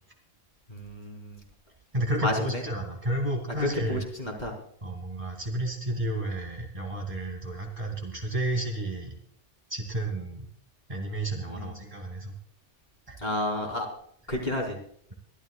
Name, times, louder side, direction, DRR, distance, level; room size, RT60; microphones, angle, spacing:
voice 1, 0.7-1.4 2.2-2.3 3.9-4.5 11.5-11.6 13.2-13.9 14.3-14.8, left 1 dB, 40° left, 0 dB, 3.9 m, -31 dB
voice 2, 1.9-4.0 4.8-9.2 9.7-10.5 10.9-12.3 13.1-13.2, right 1 dB, 30° right, 1 dB, 2.7 m, -31 dB
24.0 x 13.5 x 2.4 m, 0.63 s
omnidirectional pair, 1.2 m